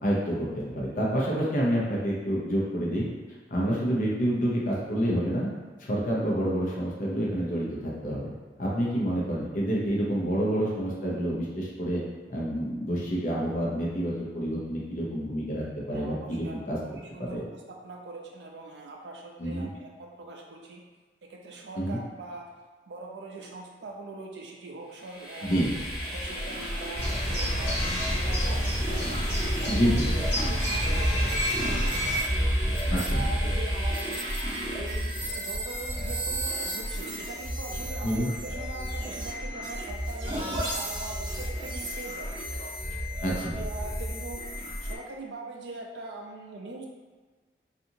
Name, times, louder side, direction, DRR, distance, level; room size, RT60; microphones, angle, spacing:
voice 1, 0.0-3.1 3.5-5.5 5.8-8.3 8.6-12.0 12.3-16.8 17.2-17.4 19.4-19.7 21.8-22.0 25.4-25.7 29.7-30.1 32.9-33.2 38.0-38.3 43.2-43.5, equal, 50° left, -5 dB, 0.6 m, -28 dB
voice 2, 15.9-16.6 16.8-20.8 21.3-22.4 22.9-25.6 26.1-32.3 32.8-34.2 34.7-40.4 40.7-44.4 44.8-46.9, right 2 dB, 80° right, 1 dB, 0.4 m, -42 dB
Train, 24.9-35.3, equal, 25° left, 1.2 m, -38 dB
sound 1, 25.5-45.0, equal, 25° right, 0.6 m, -31 dB
sound 2, 26.9-32.2, equal, 90° left, 1.2 m, -30 dB
2.7 x 2.5 x 2.6 m, 1.3 s
head